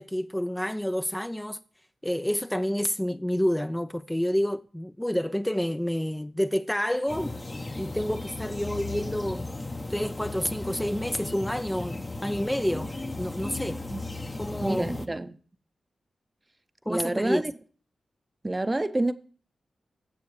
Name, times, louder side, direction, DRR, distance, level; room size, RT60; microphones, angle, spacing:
voice 1, 0.0-1.6 2.0-7.4 7.8-9.5 9.9-13.8 14.4-14.9 16.9-17.4, equal, 10° left, 0.4 m, -29 dB
sound 1, 7.1-15.1, left 2 dB, 30° left, 0.8 m, -36 dB
voice 2, 14.6-15.4 16.9-17.5 18.4-19.1, right 2 dB, 25° right, 0.7 m, -28 dB
21.0 x 7.0 x 3.2 m
supercardioid pair, 45°, 0 cm